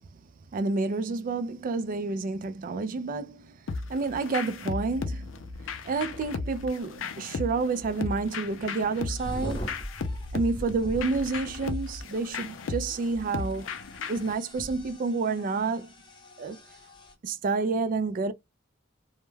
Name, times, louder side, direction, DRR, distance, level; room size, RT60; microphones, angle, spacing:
voice 1, 0.5-5.4 5.8-9.7 10.3-13.7 14.1-15.9 16.4-16.6 17.2-18.3, right 3 dB, 45° right, 0.3 m, -29 dB
sound 1, 3.7-14.3, left 4 dB, 80° left, 0.5 m, -36 dB
sound 2, 9.2-17.1, equal, 25° left, 0.7 m, -42 dB
2.2 x 2.1 x 3.1 m
head